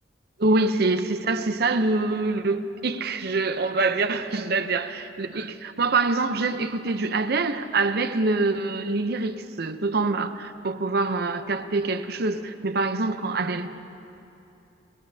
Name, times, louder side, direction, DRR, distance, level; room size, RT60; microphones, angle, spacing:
voice 1, 0.4-13.7, right 3 dB, 60° right, 9 dB, 0.7 m, -25 dB
28.5 x 18.0 x 2.8 m, 2.8 s
head